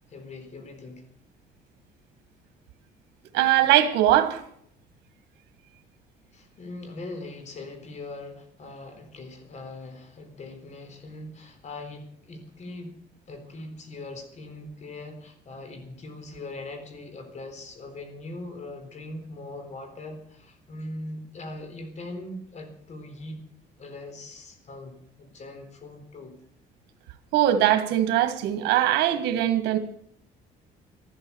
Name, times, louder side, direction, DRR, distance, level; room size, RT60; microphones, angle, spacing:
voice 1, 0.1-1.0 6.3-13.0 13.3-23.4 23.8-26.3, left 2 dB, 45° left, 3.8 m, -41 dB
voice 2, 3.3-4.4 27.3-29.8, right 12 dB, 90° right, 1.6 m, -21 dB
13.5 x 13.0 x 7.0 m
cardioid pair, 110°, 17 cm